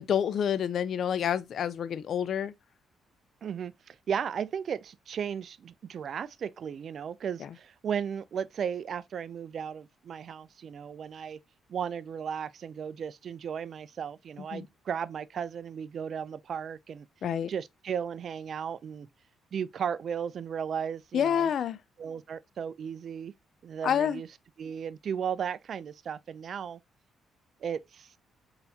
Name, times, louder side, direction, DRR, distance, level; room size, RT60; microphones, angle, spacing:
voice 1, 0.0-2.5 7.4-7.5 14.5-14.7 17.2-17.5 21.1-21.8 23.8-24.2, left 8 dB, 65° left, 0.5 m, -28 dB
voice 2, 3.4-11.4 11.7-17.1 17.5-19.1 19.5-21.5 22.0-23.3 23.6-24.3 24.6-26.8 27.6-28.1, right 7 dB, 55° right, 0.4 m, -35 dB
4.0 x 3.9 x 2.7 m
cardioid pair, 90°, 0 cm